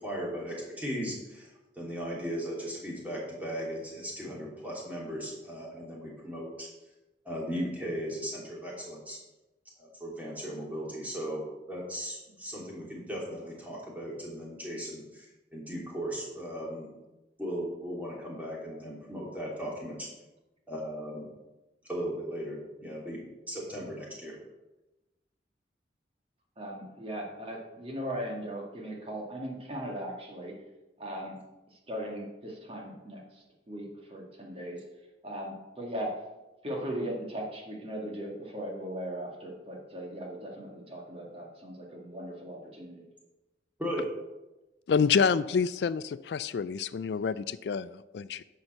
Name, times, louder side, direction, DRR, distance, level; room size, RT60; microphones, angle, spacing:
voice 1, 0.0-6.7 7.2-9.2 9.8-11.4 11.7-15.3 15.5-16.9 17.4-20.1 20.7-21.2 21.9-23.2 23.5-24.3 43.8-44.0, equal, 10° right, -4 dB, 3.1 m, -37 dB
voice 2, 26.6-30.6 31.0-31.4 31.7-34.8 35.2-36.1 36.6-43.1, right 1 dB, 35° right, 0 dB, 2.0 m, -38 dB
voice 3, 44.9-48.4, left 6 dB, 65° left, 15 dB, 0.3 m, -28 dB
10.5 x 5.7 x 6.6 m, 1.0 s
head